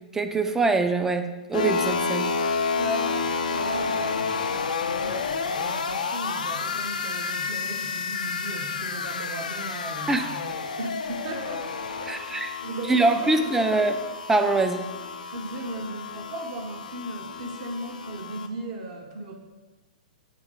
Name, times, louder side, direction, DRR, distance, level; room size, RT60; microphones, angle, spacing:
voice 1, 0.1-2.3 10.1-10.3 12.1-12.5 12.9-14.0 14.3-14.9, right 3 dB, 10° right, 7 dB, 0.4 m, -23 dB
sound 1, 1.5-18.5, left 5 dB, 70° left, 0.5 m, -30 dB
voice 2, 2.7-4.3 5.0-11.7 12.0-14.0 15.3-19.4, right 2 dB, 45° right, 1 dB, 0.8 m, -37 dB
7.6 x 3.5 x 4.8 m, 1.2 s
figure-of-eight pair, 110°, 4 cm